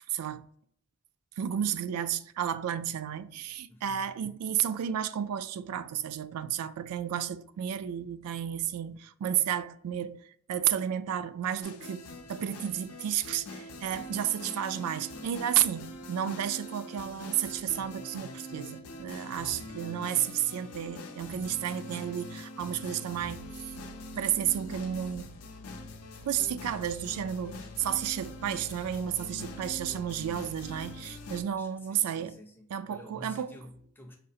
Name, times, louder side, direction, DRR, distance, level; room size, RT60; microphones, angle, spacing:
voice 1, 0.1-0.5 1.4-23.6 24.1-25.4 26.2-32.4 32.7-33.5, right 10 dB, 85° right, 0.3 m, -32 dB
voice 2, 3.7-4.1 14.0-14.4 31.5-34.2, left 1 dB, 10° left, 0.5 m, -50 dB
sound 1, 11.6-31.4, left 1 dB, 90° left, 0.6 m, -43 dB
5.1 x 2.4 x 2.7 m
head